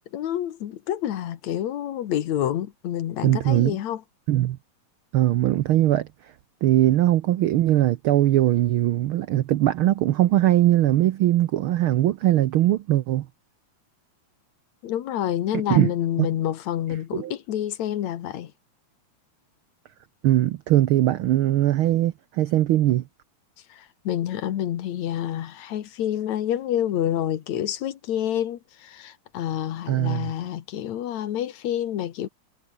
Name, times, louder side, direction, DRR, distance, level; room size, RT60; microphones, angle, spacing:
voice 1, 0.1-4.0 14.8-18.5 23.7-32.3, left 11 dB, 75° left, 2.6 m, -28 dB
voice 2, 3.2-3.8 4.3-4.6 5.1-6.1 6.6-13.3 15.5-15.9 16.2-16.3 17.1-17.3 20.2-23.0 29.9-30.3, right 14 dB, 85° right, 1.1 m, -20 dB
omnidirectional pair, 3.3 m